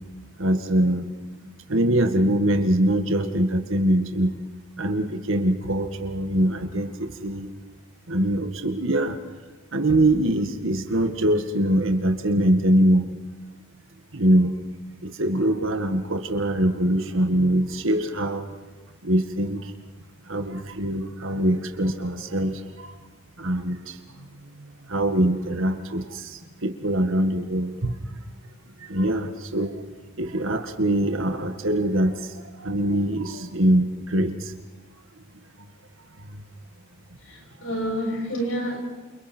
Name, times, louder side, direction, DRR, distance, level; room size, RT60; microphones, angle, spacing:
voice 1, 0.4-1.1 1.4-4.3 4.8-7.5 8.1-9.2 9.7-13.2 14.1-14.5 15.0-18.5 19.0-19.7 20.3-23.0 23.4-28.0 28.9-29.8 30.2-34.5 35.6-35.7 36.2-36.4, right 1 dB, 65° right, 5 dB, 1.8 m, -23 dB
voice 2, 37.3-38.8, equal, 65° left, 0 dB, 7.6 m, -28 dB
29.5 x 28.5 x 4.5 m, 1.4 s
head